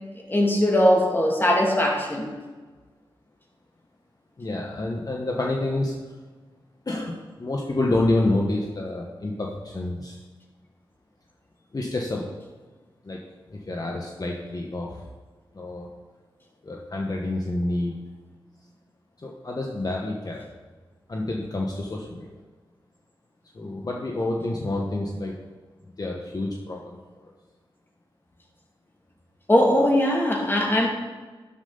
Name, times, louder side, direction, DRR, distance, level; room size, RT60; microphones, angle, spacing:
voice 1, 0.3-2.3 29.5-30.9, left 1 dB, 25° left, -1 dB, 2.5 m, -20 dB
voice 2, 4.4-6.1 6.9-10.2 11.7-12.3 13.0-13.2 13.5-15.0 15.5-15.9 16.6-18.0 19.2-20.4 21.1-22.4 23.5-25.4 26.0-27.3, left 2 dB, 45° left, -1 dB, 1.4 m, -28 dB
12.0 x 7.9 x 4.0 m, 1.3 s
cardioid pair, 60°, 9 cm